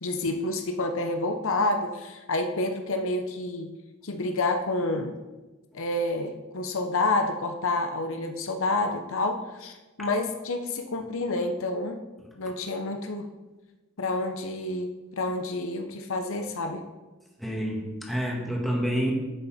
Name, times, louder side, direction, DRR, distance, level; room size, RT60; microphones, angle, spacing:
voice 1, 0.0-3.7 4.0-5.1 5.7-9.7 10.0-12.0 12.4-13.3 14.0-16.9, left 2 dB, 65° left, 5 dB, 0.8 m, -28 dB
voice 2, 17.4-19.1, equal, ahead, -2 dB, 1.7 m, -28 dB
10.0 x 7.2 x 4.3 m, 1.2 s
head